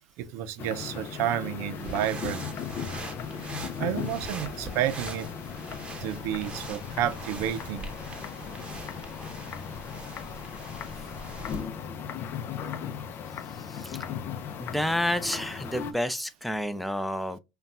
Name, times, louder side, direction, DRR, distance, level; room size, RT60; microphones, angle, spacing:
voice 1, 0.2-2.4 3.8-5.3 6.0-7.9, right 11 dB, 70° right, 0.5 m, -30 dB
sound 1, 0.6-15.9, left 7 dB, 50° left, 0.5 m, -37 dB
sound 2, 1.7-11.7, right 2 dB, 20° right, 1.0 m, -42 dB
voice 2, 14.6-17.4, left 1 dB, ahead, 0.5 m, -30 dB
5.2 x 2.3 x 2.4 m
hypercardioid pair, 80°, 5 cm